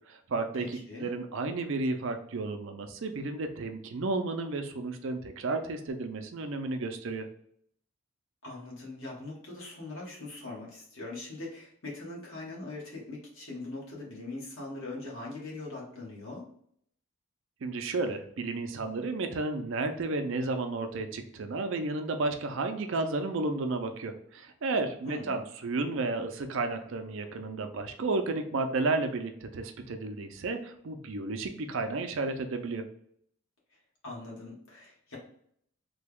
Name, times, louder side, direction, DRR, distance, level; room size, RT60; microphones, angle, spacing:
voice 1, 0.1-7.3 17.6-32.8, right 3 dB, 60° right, 7 dB, 0.4 m, -32 dB
voice 2, 0.6-1.1 8.4-16.5 25.0-25.4 34.0-35.2, left 2 dB, 70° left, -4 dB, 1.4 m, -41 dB
3.3 x 2.3 x 3.4 m, 0.66 s
head